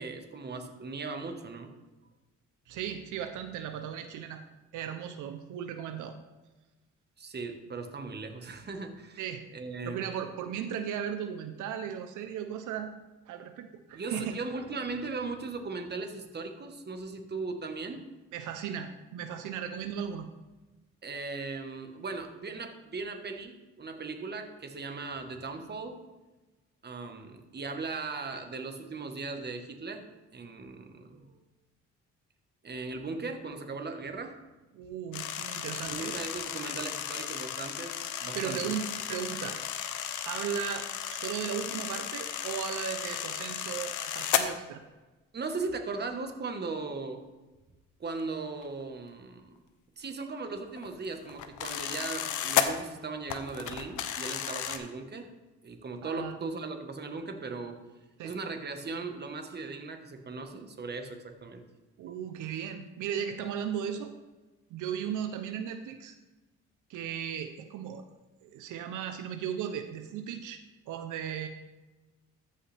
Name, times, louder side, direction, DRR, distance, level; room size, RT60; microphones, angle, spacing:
voice 1, 0.0-1.7 7.2-10.1 13.9-18.1 21.0-26.0 26.8-31.4 32.6-34.4 35.8-38.7 45.3-47.2 48.0-49.6 50.0-55.3 55.6-57.8 58.2-61.6, right 3 dB, 35° right, 5 dB, 1.3 m, -38 dB
voice 2, 2.7-4.4 4.7-6.2 9.2-9.4 9.8-12.9 13.3-14.3 18.3-20.3 34.7-36.2 38.3-38.8 39.1-39.6 40.2-44.8 56.0-56.3 58.2-58.3 62.0-64.1 64.7-66.1 66.9-68.1 68.4-70.6 70.9-71.5, right 8 dB, 85° right, 7 dB, 0.7 m, -36 dB
sound 1, 35.1-44.4 48.2-48.3 48.6-48.8 50.5-52.7 53.3-54.8, left 10 dB, 80° left, 0.8 m, -34 dB
13.5 x 5.6 x 3.4 m, 1.1 s
cardioid pair, 90°, 30 cm